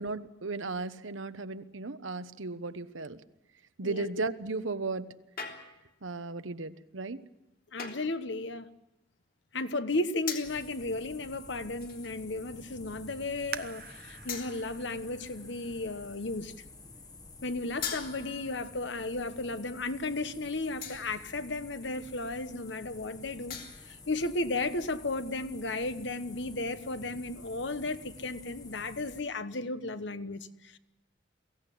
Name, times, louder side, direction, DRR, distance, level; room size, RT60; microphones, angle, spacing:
voice 1, 0.0-3.2 3.8-5.2 6.0-7.2, right 3 dB, 85° right, 1.1 m, -35 dB
sound 1, 5.4-6.0 7.8-8.2 10.3-10.7 11.8-12.2 12.9-13.0 14.3-14.9 17.8-18.6 20.8-21.3 23.5-24.0, left 7 dB, 45° left, 3.3 m, -40 dB
voice 2, 7.7-8.7 9.5-16.5 17.4-23.6 23.9-30.8, left 2 dB, 65° left, 1.2 m, -34 dB
sound 2, 10.4-29.2, left 3 dB, 20° left, 1.1 m, -50 dB
sound 3, 13.5-16.9 17.5-17.6 18.2-18.6 19.0-19.1, right 8 dB, 50° right, 0.8 m, -46 dB
23.0 x 16.5 x 10.0 m
head